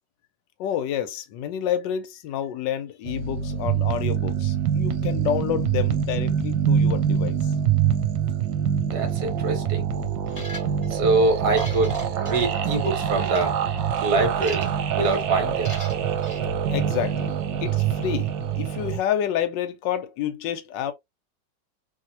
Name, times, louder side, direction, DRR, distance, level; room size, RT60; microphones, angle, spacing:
voice 1, 0.6-7.4 16.7-17.3 17.6-20.9, left 10 dB, 80° left, 1.2 m, -29 dB
sound 1, 3.1-19.0, right 8 dB, 80° right, 1.3 m, -25 dB
voice 2, 8.8-9.9 10.9-13.6 14.0-15.7, right 3 dB, 60° right, 1.6 m, -24 dB
sound 2, 10.3-10.9 11.4-12.9 13.2-13.4 14.0-14.8 15.0-15.2 15.6-16.4, left 1 dB, 15° left, 1.7 m, -41 dB
3.0 x 2.8 x 2.7 m
omnidirectional pair, 2.0 m